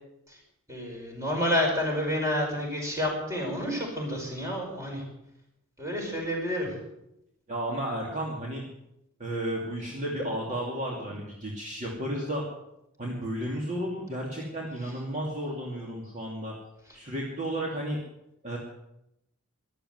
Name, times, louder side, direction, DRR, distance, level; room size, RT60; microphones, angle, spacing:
voice 1, 0.7-5.0 5.8-6.7, left 1 dB, 15° right, 0 dB, 5.1 m, -29 dB
voice 2, 7.5-8.6 9.2-12.4 13.0-16.5 16.9-18.0 18.4-18.6, right 1 dB, 35° right, -2 dB, 2.6 m, -33 dB
14.0 x 12.0 x 8.0 m, 0.84 s
head